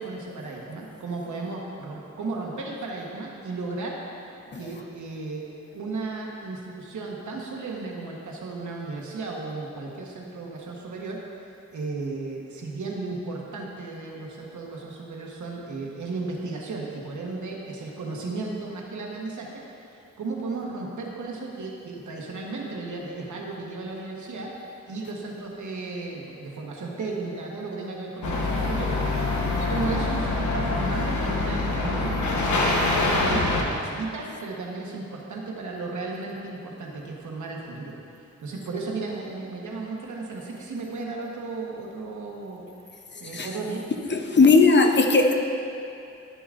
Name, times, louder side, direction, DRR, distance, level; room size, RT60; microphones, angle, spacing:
voice 1, 0.0-4.0 4.5-5.4 5.7-24.5 24.9-29.3 29.6-32.2 33.0-42.7 43.2-43.8, right 3 dB, 85° right, -1 dB, 1.2 m, -34 dB
sound 1, 28.2-33.6, left 2 dB, 80° left, 1.0 m, -25 dB
voice 2, 44.1-45.3, left 3 dB, 40° left, 4 dB, 0.7 m, -18 dB
12.0 x 6.9 x 2.5 m, 2.6 s
cardioid pair, 65°, 29 cm